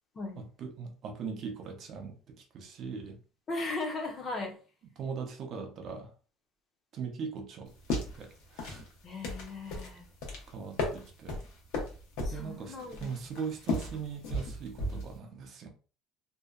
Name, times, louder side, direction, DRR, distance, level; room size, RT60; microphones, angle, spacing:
voice 1, 0.4-3.2 5.0-6.1 6.9-8.9 10.5-11.4 12.3-15.7, right 6 dB, 45° right, 0.5 m, -40 dB
voice 2, 3.5-4.6 9.0-10.1 12.2-13.1, left 2 dB, 30° left, 0.5 m, -37 dB
sound 1, 7.7-15.2, left 2 dB, 85° left, 0.8 m, -36 dB
2.6 x 2.1 x 2.3 m
cardioid pair, 155°, 0 cm